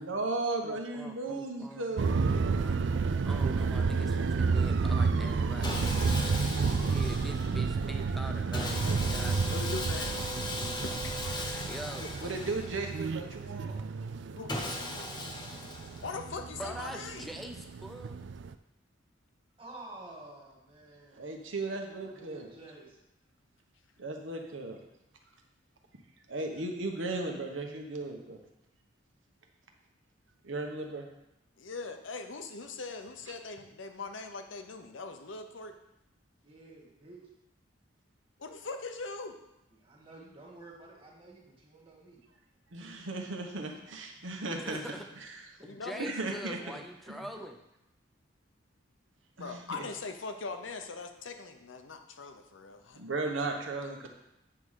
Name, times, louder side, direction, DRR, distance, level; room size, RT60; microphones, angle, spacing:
voice 1, 0.0-2.3 8.8-9.3 12.2-13.8 21.1-22.5 24.0-24.8 26.3-28.4 30.4-31.1 42.7-44.8 45.2-45.3 45.9-46.6 47.1-47.2 49.4-49.8 53.0-54.1, right 2 dB, 85° right, 3 dB, 1.1 m, -36 dB
voice 2, 0.6-2.8 3.2-5.9 6.8-9.5 10.0-11.0 11.7-12.1 16.6-18.3 44.6-45.0 45.7-47.5, equal, ahead, 4 dB, 0.6 m, -44 dB
sound 1, 2.0-18.5, right 4 dB, 70° right, 0.4 m, -31 dB
Sawing, 5.6-7.7 8.5-13.1 14.5-16.3, left 1 dB, 25° left, 1.0 m, -38 dB
voice 3, 9.5-10.3 10.8-11.6 14.4-14.5 16.0-17.3 31.6-35.7 38.4-39.4 45.6-46.1 49.4-53.0, left 4 dB, 85° left, 6 dB, 0.8 m, -41 dB
voice 4, 19.6-21.4 22.0-23.0 36.4-37.2 39.8-42.2 47.0-47.1, right 2 dB, 25° right, -2 dB, 1.8 m, -51 dB
8.9 x 3.8 x 6.3 m, 0.88 s
head